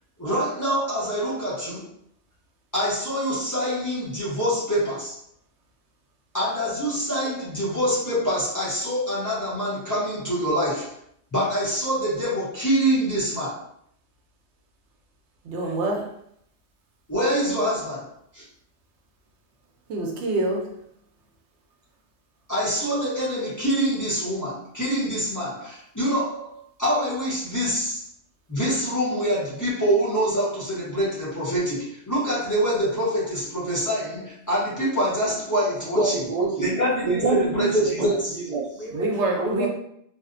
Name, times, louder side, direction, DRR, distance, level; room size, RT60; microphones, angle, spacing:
voice 1, 0.2-1.9 2.7-5.2 6.3-11.0 11.3-13.7 17.1-18.4 22.5-28.0 28.5-36.2 36.6-38.2, equal, 20° left, -8 dB, 0.6 m, -25 dB
voice 2, 15.4-16.1 19.9-20.7 38.9-39.7, right 2 dB, 85° right, 1 dB, 0.9 m, -26 dB
voice 3, 35.9-36.8 37.0-39.0 39.4-39.7, right 2 dB, 55° right, -5 dB, 0.4 m, -25 dB
2.6 x 2.1 x 2.4 m, 0.70 s
omnidirectional pair, 1.1 m